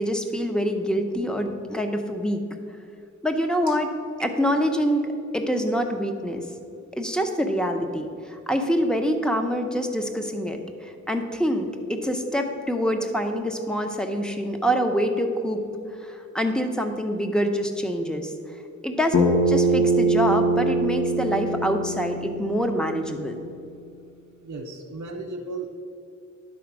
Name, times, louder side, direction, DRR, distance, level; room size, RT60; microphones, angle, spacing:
voice 1, 0.0-2.4 3.2-3.9 4.2-6.4 7.0-15.6 16.0-18.3 18.8-23.4, equal, 5° left, 5 dB, 0.7 m, -25 dB
Bass guitar, 19.1-23.4, right 2 dB, 75° left, 1.0 m, -23 dB
voice 2, 24.4-25.7, right 3 dB, 90° right, 0 dB, 0.7 m, -35 dB
10.5 x 4.2 x 6.0 m, 2.6 s
wide cardioid pair, 95°, 30 cm